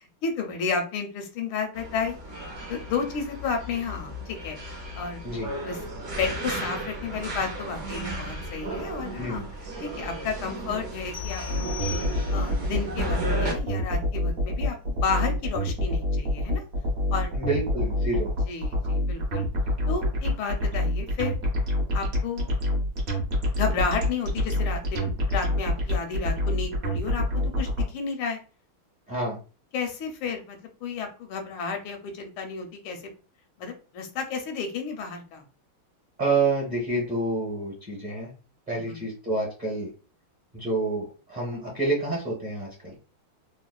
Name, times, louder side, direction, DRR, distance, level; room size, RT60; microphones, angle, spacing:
voice 1, 0.0-2.2 2.7-5.2 5.6-9.4 9.8-11.7 12.3-16.6 17.1-17.3 18.5-19.5 19.9-21.4 21.9-22.5 23.6-28.4 29.7-33.1 33.6-35.4 38.7-39.0, left 5 dB, 80° left, 4 dB, 1.5 m, -32 dB
sound 1, 1.7-13.5, right 1 dB, 80° right, 0.6 m, -35 dB
voice 2, 9.2-9.5 17.4-18.3 29.1-29.4 36.2-38.3 38.7-39.9 40.5-42.9, right 2 dB, 30° right, -4 dB, 0.8 m, -28 dB
sound 2, 11.1-12.7, left 9 dB, 65° left, 0.9 m, -40 dB
sound 3, 11.5-27.8, left 1 dB, 55° right, 1.0 m, -26 dB
3.5 x 2.0 x 2.3 m, 0.35 s
omnidirectional pair, 2.3 m